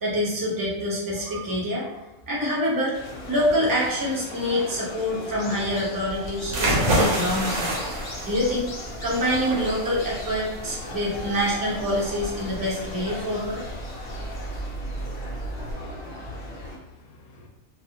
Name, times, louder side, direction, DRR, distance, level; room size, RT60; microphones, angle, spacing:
voice 1, 0.0-3.0 3.3-7.8 8.2-8.7 9.0-13.6, equal, 30° right, -5 dB, 0.3 m, -26 dB
sound 1, 2.9-16.8, left 1 dB, 55° left, 0.7 m, -37 dB
sound 2, 6.4-15.7, right 1 dB, 60° right, 0.9 m, -29 dB
voice 2, 15.8-17.5, left 3 dB, 75° left, 1 dB, 1.0 m, -53 dB
2.6 x 2.4 x 2.7 m, 1.0 s
omnidirectional pair, 1.6 m